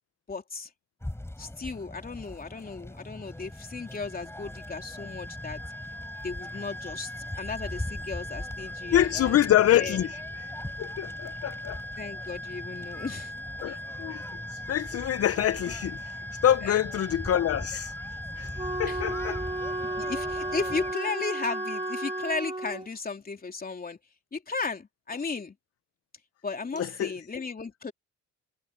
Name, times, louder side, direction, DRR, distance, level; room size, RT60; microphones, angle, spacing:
voice 1, 0.3-0.7 1.4-5.6 6.2-9.3 9.7-10.0 12.0-13.3 16.6-16.8 18.9-19.0 20.0-24.0 24.3-25.5 26.4-27.9, left 4 dB, 30° left, 3.4 m, -35 dB
sound 1, 1.0-20.9, left 1 dB, 10° left, 6.9 m, -41 dB
sound 2, 3.3-22.4, left 1 dB, 35° right, 1.5 m, -40 dB
voice 2, 8.9-10.5 10.8-11.8 13.6-14.2 14.5-17.9 18.4-19.4 26.7-27.2, left 11 dB, 50° left, 0.7 m, -26 dB
Wind instrument woodwind instrument, 18.6-22.9, right 2 dB, 15° right, 1.8 m, -33 dB
cardioid pair, 90°, 30 cm